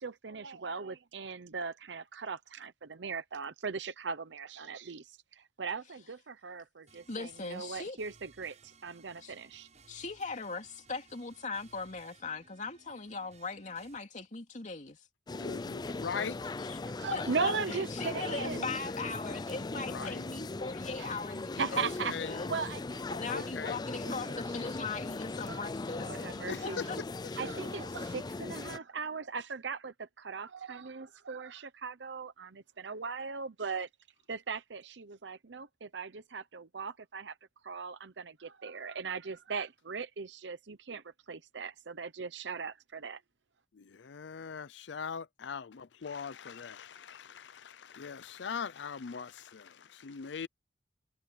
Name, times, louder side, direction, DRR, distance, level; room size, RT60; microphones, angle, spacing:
voice 1, 0.0-9.7 16.9-18.7 20.0-20.1 21.0-21.1 21.6-23.0 23.3-23.7 24.0-24.7 25.4-25.6 25.9-26.9 27.3-33.9 34.3-37.3 37.6-43.2, right 5 dB, 80° right, 0.8 m, -39 dB
sound 1, 6.9-14.0, right 4 dB, 40° right, 7.2 m, -61 dB
voice 2, 7.1-8.0 9.2-9.3 9.9-15.0 16.6-16.8 17.1-22.5 23.1-27.0, left 4 dB, 45° left, 2.7 m, -40 dB
voice 3, 15.3-16.4 19.7-20.3 21.7-22.4 23.3-23.8 26.5-27.0 43.7-50.5, left 6 dB, 75° left, 0.5 m, -41 dB
sound 2, 15.3-28.8, left 3 dB, 25° left, 0.4 m, -39 dB
head